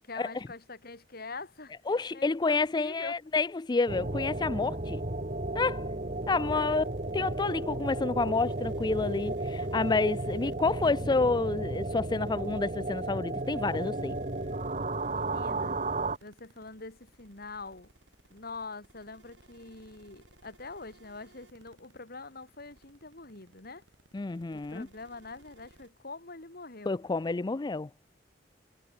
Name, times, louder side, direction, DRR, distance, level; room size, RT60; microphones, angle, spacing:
voice 1, 0.1-1.8 2.1-3.1 6.5-6.9 15.0-15.8 16.2-17.9 18.3-23.8 24.5-27.0, left 3 dB, 55° left, 3.4 m, -44 dB
voice 2, 1.9-5.0 5.5-5.9 6.3-6.8 7.1-14.2 24.1-24.9 26.9-27.9, left 3 dB, 25° left, 0.4 m, -29 dB
sound 1, 3.9-16.2, right 2 dB, 40° right, 2.8 m, -34 dB
sound 2, 6.2-25.9, right 2 dB, 85° right, 6.2 m, -60 dB
head